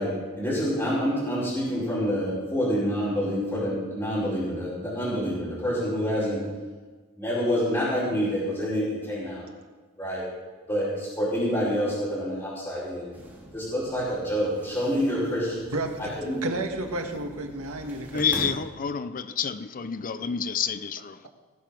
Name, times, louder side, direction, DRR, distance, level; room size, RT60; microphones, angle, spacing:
voice 1, 0.0-6.4 7.2-9.4 10.0-10.3 10.7-13.1 13.5-15.7 16.2-16.4, equal, 15° left, 4.8 m, -27 dB
sound 1, 13.1-18.5, right 1 dB, 10° right, 2.9 m, -43 dB
voice 2, 15.7-16.1 16.4-18.6, right 2 dB, 80° right, 1.6 m, -32 dB
voice 3, 18.1-21.3, left 7 dB, 40° left, 0.6 m, -29 dB
19.5 x 7.0 x 6.1 m
head